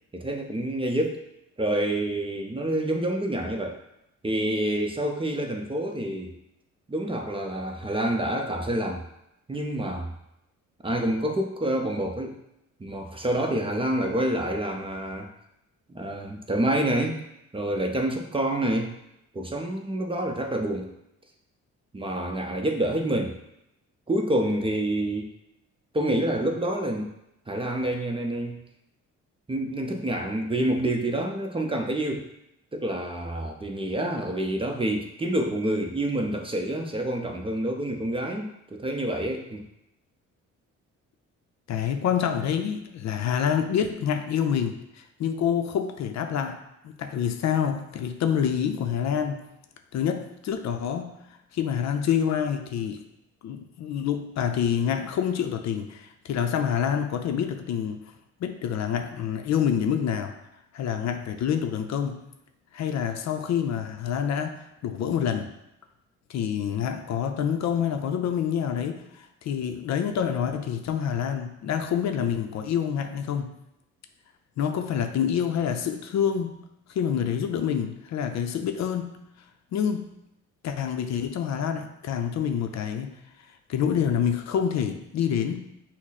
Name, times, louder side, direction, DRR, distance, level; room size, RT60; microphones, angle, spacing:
voice 1, 0.1-1.2 1.6-3.8 4.2-6.3 6.9-9.0 9.5-10.1 10.8-12.3 12.8-15.3 15.9-17.2 17.5-18.9 19.3-20.9 21.9-23.3 24.1-25.3 25.9-27.1 27.5-28.6 29.5-32.3 32.7-39.6, right 1 dB, 20° right, 2 dB, 0.6 m, -27 dB
voice 2, 41.7-49.4 49.9-51.2 51.5-53.0 53.4-58.0 58.4-60.4 60.7-62.2 62.7-65.5 66.3-73.5 74.6-76.6 76.9-79.2 79.7-80.1 80.6-83.1 83.7-85.7, left 8 dB, 65° left, 6 dB, 0.5 m, -27 dB
6.0 x 2.1 x 4.1 m, 0.84 s
cardioid pair, 90°, 30 cm